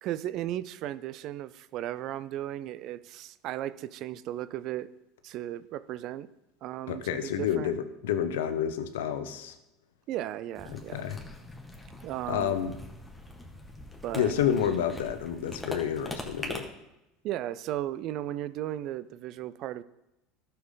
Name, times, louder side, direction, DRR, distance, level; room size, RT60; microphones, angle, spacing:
voice 1, 0.0-4.9 5.2-6.3 6.6-7.7 10.1-11.0 12.0-12.5 14.0-14.3 17.2-19.8, right 13 dB, 55° right, 16 dB, 0.5 m, -35 dB
voice 2, 6.9-9.5 10.7-11.2 12.3-12.8 14.2-16.7, left 9 dB, 80° left, 9 dB, 0.9 m, -29 dB
sound 1, 10.6-16.6, left 1 dB, 5° left, 1.9 m, -42 dB
12.5 x 6.9 x 3.9 m, 0.91 s
hypercardioid pair, 85°, 0 cm